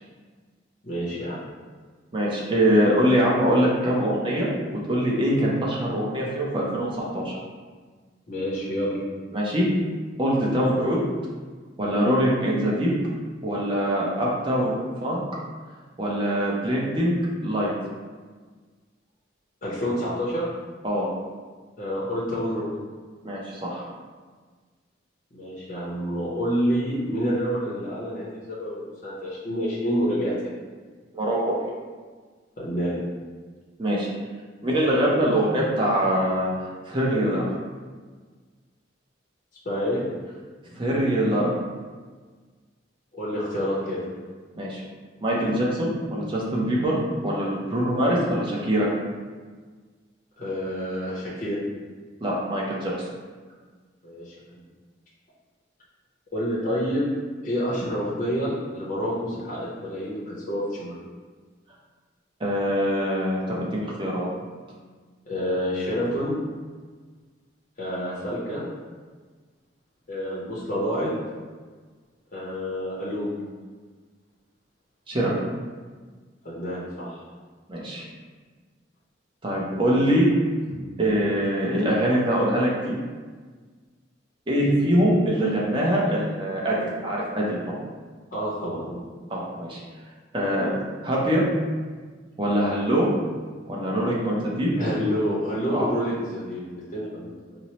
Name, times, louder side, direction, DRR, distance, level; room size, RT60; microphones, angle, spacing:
voice 1, 0.8-1.4 8.3-9.0 19.6-20.5 21.8-22.7 25.3-30.6 32.6-33.0 39.6-40.0 43.1-44.0 50.4-51.6 54.0-54.3 56.3-57.1 57.4-61.0 65.3-66.4 67.8-68.6 70.1-71.1 72.3-73.3 76.4-77.2 80.7-80.8 88.3-89.0 94.8-97.6, equal, 40° left, -8 dB, 0.6 m, -28 dB
voice 2, 2.1-4.5 4.9-7.4 9.3-9.7 10.2-11.0 11.8-12.9 13.4-15.2 16.0-17.2 17.4-17.7 20.8-21.1 23.2-23.9 31.1-31.5 33.8-34.1 34.6-37.5 40.7-41.5 44.6-44.8 45.2-47.0 47.2-48.9 52.2-52.9 62.4-64.3 75.1-75.3 77.7-78.1 79.4-80.3 81.0-83.0 84.5-86.8 87.0-87.6 89.3-89.8 90.3-90.8 91.0-91.4 92.4-93.1 93.7-94.7 95.7-95.9, equal, 25° right, -5 dB, 0.6 m, -23 dB
4.2 x 2.0 x 2.9 m, 1.5 s
head